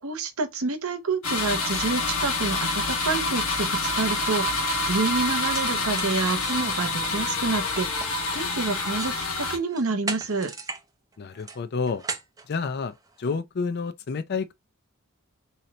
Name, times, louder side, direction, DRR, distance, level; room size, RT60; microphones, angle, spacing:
voice 1, 0.0-10.5, right 3 dB, 70° right, 0.9 m, -28 dB
sound 1, 1.2-9.6, left 2 dB, 70° left, 1.0 m, -27 dB
sound 2, 4.1-4.3 4.8-4.9 5.3-9.2 9.6-10.8 11.1-13.2, right 4 dB, 15° right, 0.5 m, -38 dB
voice 2, 11.2-12.0 12.5-14.5, left 5 dB, 50° left, 0.4 m, -29 dB
3.9 x 2.8 x 3.1 m
head